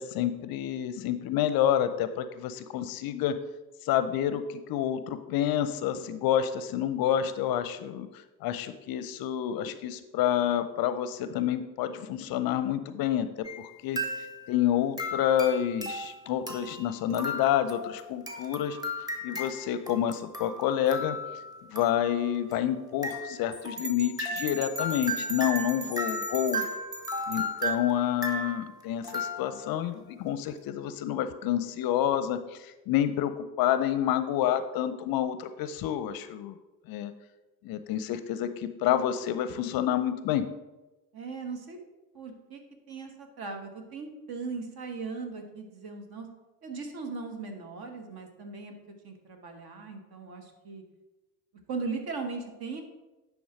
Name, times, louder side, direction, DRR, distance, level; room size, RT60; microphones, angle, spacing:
voice 1, 0.0-3.4 3.8-13.3 13.6-14.0 14.5-18.8 19.2-21.2 21.7-26.7 27.3-36.6 36.9-37.1 37.6-40.4, left 10 dB, 50° left, 12 dB, 0.5 m, -28 dB
sound 1, 13.4-13.7 14.0-14.6 15.0-29.9, equal, 10° right, 1.1 m, -36 dB
sound 2, 23.8-27.5, right 3 dB, 90° right, 0.9 m, -39 dB
voice 2, 41.1-41.8 42.1-42.6 42.9-46.3 46.6-48.7 49.0-50.8 51.7-52.8, right 4 dB, 50° right, 5 dB, 1.5 m, -38 dB
10.0 x 3.5 x 4.8 m, 1.1 s
hypercardioid pair, 55°, 48 cm